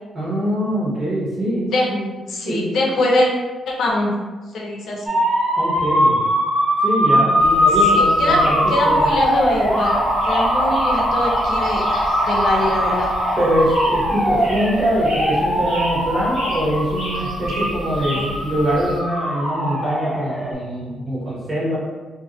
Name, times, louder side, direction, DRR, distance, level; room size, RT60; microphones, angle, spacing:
voice 1, 0.1-2.1 2.5-2.7 5.6-6.2 6.8-9.1 13.4-21.8, equal, 25° right, -8 dB, 1.2 m, -23 dB
voice 2, 2.3-3.3 3.7-4.1 4.5-5.2 7.9-10.0 10.2-13.1 18.1-18.3, left 1 dB, 70° left, -1 dB, 0.5 m, -23 dB
sound 1, 5.1-20.5, equal, ahead, 1.0 m, -20 dB
sound 2, 7.4-19.0, equal, 60° right, 1.2 m, -33 dB
2.5 x 2.4 x 2.5 m, 1.3 s
cardioid pair, 110°, 0 cm